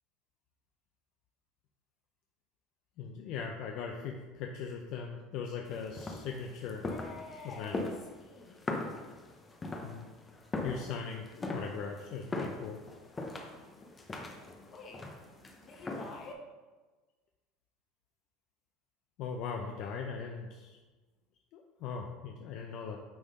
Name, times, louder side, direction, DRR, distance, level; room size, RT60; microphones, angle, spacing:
voice 1, 3.0-6.8 7.6-7.8 9.8-10.0 10.6-12.8 19.2-20.8 21.5-23.0, left 6 dB, 55° left, 2 dB, 0.5 m, -39 dB
sound 1, 5.7-16.3, left 2 dB, 15° left, 0.7 m, -41 dB
voice 2, 6.8-8.7 14.7-15.1 15.7-16.5, left 3 dB, 30° left, 0 dB, 1.2 m, -48 dB
8.7 x 3.6 x 4.1 m, 1.3 s
cardioid pair, 155°, 0 cm